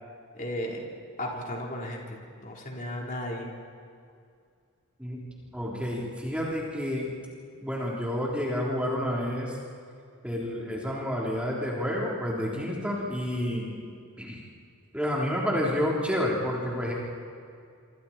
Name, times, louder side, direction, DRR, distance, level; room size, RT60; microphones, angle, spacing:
voice 1, 0.3-0.8 1.2-3.6, left 1 dB, 40° left, -1 dB, 3.9 m, -35 dB
voice 2, 5.5-7.1 7.6-9.6 10.2-13.7 14.2-14.4 14.9-16.9, equal, 5° right, -4 dB, 3.6 m, -29 dB
27.5 x 26.5 x 4.4 m, 2.3 s
head